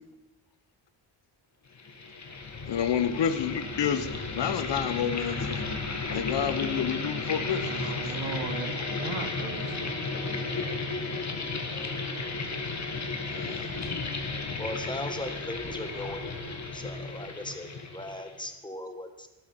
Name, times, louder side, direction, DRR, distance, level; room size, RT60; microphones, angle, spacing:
sound 1, 1.7-18.4, left 3 dB, 35° left, 1.9 m, -34 dB
voice 1, 2.7-4.1 4.3-5.6 6.1-7.8 13.3-13.7, left 8 dB, 65° left, 11 dB, 1.1 m, -29 dB
voice 2, 7.6-10.0, right 7 dB, 65° right, 10 dB, 1.3 m, -37 dB
voice 3, 14.6-16.2 16.7-19.3, left 1 dB, 10° left, 6 dB, 1.6 m, -38 dB
12.5 x 10.5 x 5.8 m, 1.0 s
cardioid pair, 85°, 46 cm